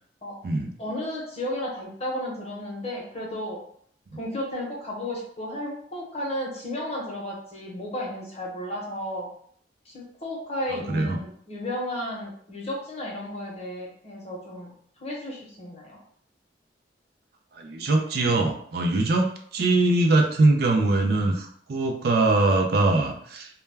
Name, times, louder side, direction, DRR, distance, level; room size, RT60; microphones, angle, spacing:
voice 1, 0.8-3.6 4.1-9.3 9.8-14.7 15.0-16.0, left 1 dB, 35° left, -3 dB, 0.8 m, -33 dB
voice 2, 10.7-11.2 17.5-23.5, right 2 dB, 60° right, 3 dB, 0.4 m, -22 dB
2.1 x 2.1 x 3.2 m, 0.63 s
head